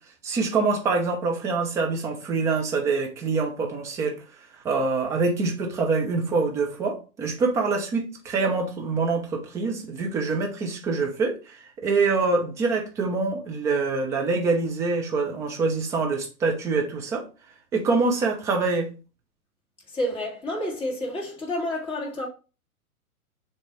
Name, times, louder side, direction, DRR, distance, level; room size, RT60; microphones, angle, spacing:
voice 1, 0.2-4.1 4.6-17.2 17.7-18.9, right 4 dB, 5° right, 0.5 m, -25 dB
voice 2, 19.9-22.3, left 1 dB, 10° left, 2.3 m, -29 dB
7.0 x 3.0 x 4.6 m
hypercardioid pair, 135°, 43 cm